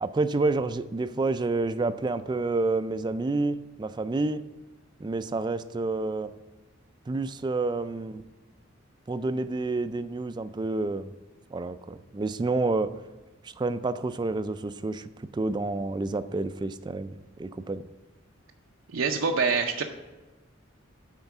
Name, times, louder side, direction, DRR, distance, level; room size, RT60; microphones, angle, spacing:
voice 1, 0.0-4.4 5.0-6.3 7.1-8.2 9.1-11.1 11.5-12.9 13.4-17.8, right 3 dB, 20° right, 13 dB, 0.3 m, -29 dB
voice 2, 18.9-19.8, right 5 dB, 85° right, 2 dB, 0.6 m, -25 dB
9.4 x 4.5 x 6.0 m, 1.2 s
head